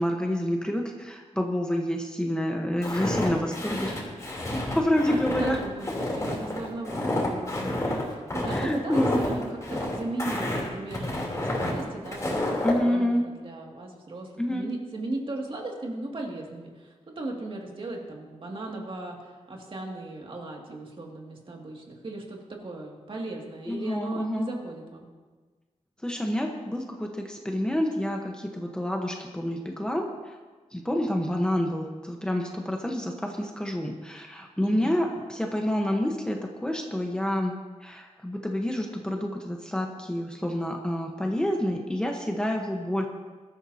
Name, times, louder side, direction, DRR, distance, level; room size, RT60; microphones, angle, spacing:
voice 1, 0.0-3.9 4.7-5.6 8.5-9.3 12.6-13.2 14.4-14.7 23.7-24.5 26.0-30.3 30.7-37.5 37.8-43.1, left 1 dB, 5° left, 1 dB, 1.1 m, -28 dB
Walk footsteps, 2.8-12.8, left 1 dB, 25° left, 3.2 m, -29 dB
voice 2, 5.3-25.1 34.6-35.0, right 2 dB, 45° right, -1 dB, 2.3 m, -37 dB
21.5 x 13.0 x 2.8 m, 1.4 s
wide cardioid pair, 145°, 12 cm